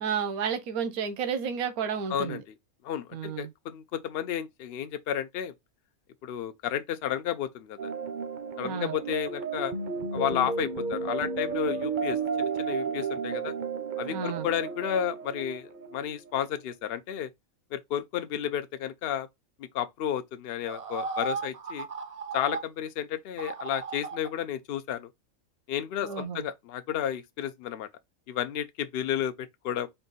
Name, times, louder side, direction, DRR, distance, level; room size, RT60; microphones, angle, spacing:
voice 1, 0.0-2.4 3.1-3.5 8.6-8.9 14.1-14.5 26.0-26.4, right 7 dB, 90° right, 1.2 m, -31 dB
voice 2, 2.1-2.4 2.8-5.5 6.2-7.9 8.6-9.7 10.1-13.5 14.0-17.3 17.7-19.3 19.6-21.9 22.3-25.1 25.7-27.9 28.3-29.9, left 10 dB, 60° left, 0.7 m, -32 dB
sound 1, 7.8-16.4, right 5 dB, 45° right, 0.7 m, -33 dB
sound 2, 20.7-22.6 23.4-24.3 26.0-26.2, right 5 dB, 70° right, 0.3 m, -36 dB
4.5 x 2.6 x 4.0 m
omnidirectional pair, 1.5 m